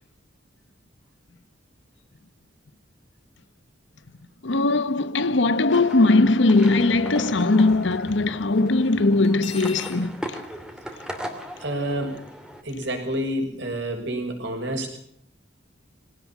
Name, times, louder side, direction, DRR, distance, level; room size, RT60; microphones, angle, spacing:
voice 1, 4.4-10.4, left 2 dB, 75° left, 1.0 m, -20 dB
sound 1, 5.7-12.6, equal, 5° right, 2.7 m, -38 dB
Cutlery silverware, 9.2-10.0, left 6 dB, 35° left, 2.7 m, -39 dB
voice 2, 11.6-12.2 12.6-15.0, right 1 dB, 65° right, 6.3 m, -28 dB
22.5 x 17.5 x 7.3 m
head